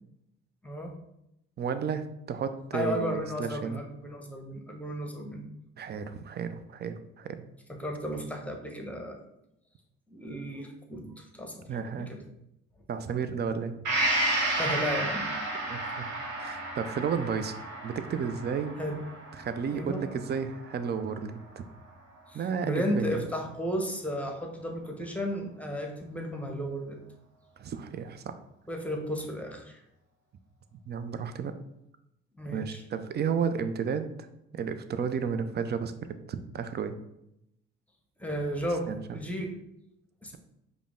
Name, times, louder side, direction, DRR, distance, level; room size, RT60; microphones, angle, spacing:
voice 1, 1.6-3.8 5.8-7.5 11.7-12.1 12.9-13.8 15.7-16.1 16.4-17.6 17.8-18.8 19.4-21.6 22.3-23.2 27.6-28.4 30.9-31.5 32.5-34.1 34.5-35.9 36.3-37.0 38.9-39.2, right 6 dB, 30° right, 11 dB, 0.4 m, -32 dB
voice 2, 2.7-5.5 7.7-9.2 10.1-12.2 14.5-15.3 18.8-19.0 19.7-20.0 22.3-27.0 28.7-29.8 32.4-32.8 38.2-39.5 40.2-40.4, equal, 5° left, 2 dB, 0.9 m, -34 dB
Gong, 13.8-21.5 21.9-22.0, right 1 dB, 60° right, 1.2 m, -32 dB
5.0 x 2.1 x 3.5 m, 0.82 s
hypercardioid pair, 45°, 35 cm